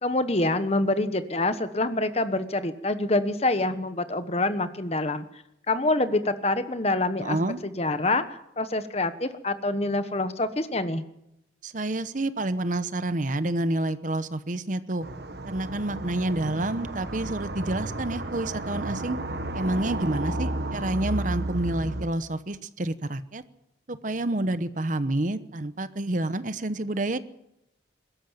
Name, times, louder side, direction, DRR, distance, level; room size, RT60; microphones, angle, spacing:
voice 1, 0.0-5.2 5.7-7.4 7.6-11.0, left 2 dB, 35° left, 11 dB, 1.2 m, -26 dB
voice 2, 7.2-7.6 11.6-15.1 15.5-19.2 19.5-23.4 23.9-27.2, right 1 dB, 45° right, 13 dB, 0.9 m, -28 dB
sound 1, 15.0-22.1, right 1 dB, 60° right, 1.4 m, -32 dB
22.0 x 13.0 x 9.1 m, 0.81 s
head